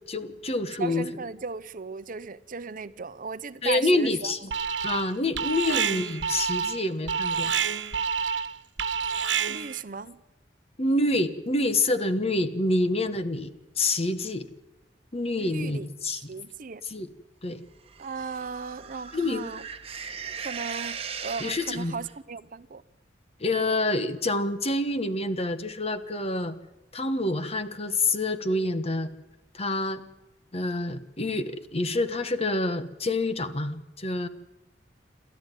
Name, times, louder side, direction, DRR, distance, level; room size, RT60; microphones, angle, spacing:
voice 1, 0.1-1.1 3.6-4.5 4.8-7.6 10.8-13.5 13.8-14.5 15.1-16.2 16.9-17.1 17.4-17.6 19.1-19.5 21.4-21.9 23.4-26.6 26.9-29.1 29.5-30.0 30.5-34.3, left 2 dB, 35° left, 1.3 m, -27 dB
voice 2, 0.7-4.3 5.7-5.8 9.5-10.2 15.4-16.8 18.0-19.7 20.4-22.8, right 4 dB, 50° right, 0.8 m, -37 dB
Alarm, 4.5-5.1 5.4-9.8, right 6 dB, 80° right, 1.3 m, -28 dB
sound 1, 17.9-22.2, right 6 dB, 35° right, 1.4 m, -38 dB
28.0 x 13.0 x 9.2 m
head